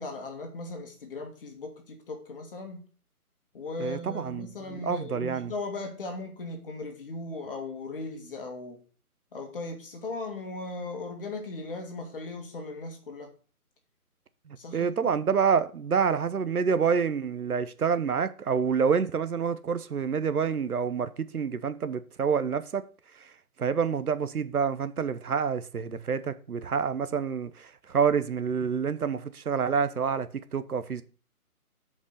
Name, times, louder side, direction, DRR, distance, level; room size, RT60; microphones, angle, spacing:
voice 1, 0.0-2.8 3.5-8.8 9.3-13.3 14.6-15.1, left 2 dB, 35° left, 2.1 m, -38 dB
voice 2, 3.8-5.5 14.5-22.8 23.6-31.0, right 6 dB, 75° right, 1.1 m, -28 dB
7.1 x 5.3 x 6.6 m
hypercardioid pair, 160°, 44 cm